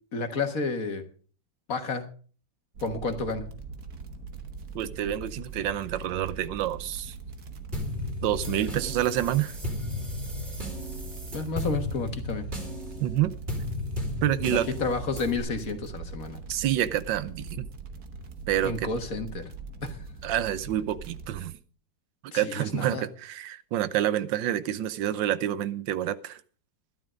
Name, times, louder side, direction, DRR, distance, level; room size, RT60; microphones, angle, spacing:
voice 1, 0.1-1.1 1.7-2.1 2.8-3.5 11.3-12.5 14.5-16.4 18.6-19.4 19.8-20.0 22.3-23.0, left 3 dB, 50° left, 7 dB, 1.8 m, -31 dB
sound 1, 2.7-21.4, right 4 dB, 60° right, 1.8 m, -41 dB
voice 2, 4.7-7.1 8.2-9.6 13.0-13.3 14.2-14.7 16.5-17.7 18.5-18.9 20.2-21.6 22.3-26.4, right 12 dB, 90° right, 16 dB, 1.5 m, -28 dB
sound 2, 7.7-15.4, left 1 dB, 35° right, 4.0 m, -35 dB
12.5 x 11.0 x 5.1 m, 0.41 s
omnidirectional pair, 1.9 m